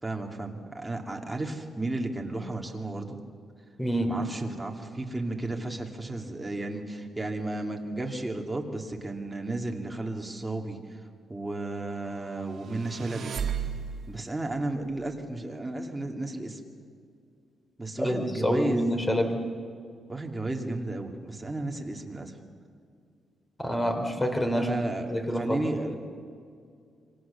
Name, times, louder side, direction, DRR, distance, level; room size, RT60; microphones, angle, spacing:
voice 1, 0.0-3.2 4.1-11.0 11.3-13.3 14.1-16.6 17.8-19.0 20.1-22.3 24.6-26.0, right 2 dB, 10° right, 1 dB, 2.6 m, -33 dB
voice 2, 3.8-4.2 18.0-19.4 23.6-24.7 25.1-25.6, equal, 15° left, 5 dB, 3.3 m, -27 dB
sound 1, 12.5-14.3, right 7 dB, 55° right, 1.9 m, -34 dB
27.5 x 24.5 x 7.0 m, 2.3 s
wide cardioid pair, 150°, 0 cm